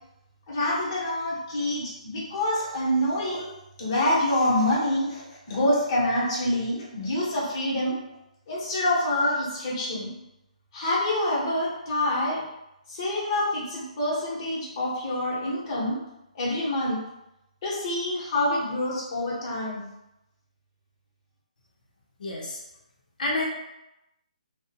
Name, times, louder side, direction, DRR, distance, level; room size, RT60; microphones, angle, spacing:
voice 1, 0.5-3.5 3.8-8.0 8.5-10.1 10.7-12.4 12.9-16.0 16.3-17.0 17.6-19.9, left 1 dB, 30° left, -7 dB, 0.9 m, -26 dB
voice 2, 22.2-22.6 23.2-23.4, left 2 dB, 80° left, -3 dB, 0.6 m, -28 dB
2.5 x 2.1 x 2.7 m, 0.89 s
hypercardioid pair, 165°, 4 cm